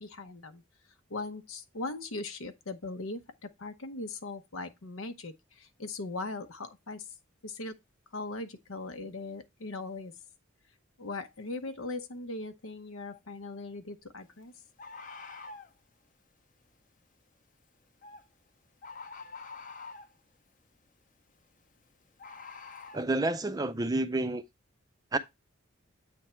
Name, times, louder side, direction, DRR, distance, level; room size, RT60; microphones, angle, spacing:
voice 1, 0.0-0.6 1.1-7.1 7.4-7.8 8.1-10.1 11.0-14.5, left 2 dB, 85° left, 0.9 m, -39 dB
Bird, 13.1-13.2 14.8-15.7 18.0-18.2 18.8-20.2 22.2-23.0, left 4 dB, 40° left, 0.7 m, -45 dB
voice 2, 22.9-24.4 25.1-25.2, right 2 dB, 20° right, 0.4 m, -29 dB
8.3 x 3.5 x 4.3 m
head